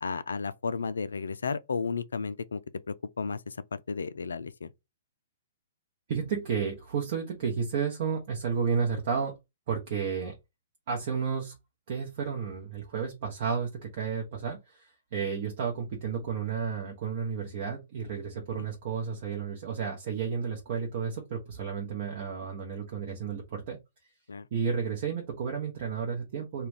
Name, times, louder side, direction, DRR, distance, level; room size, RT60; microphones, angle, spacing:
voice 1, 0.0-2.6 2.9-4.7 18.5-18.6 24.3-24.5, left 5 dB, 80° left, 0.3 m, -33 dB
voice 2, 6.1-9.3 9.7-10.3 10.9-11.5 11.9-23.8 24.5-26.7, right 6 dB, 50° right, 0.8 m, -32 dB
2.3 x 2.2 x 3.4 m
figure-of-eight pair, 120°, 0 cm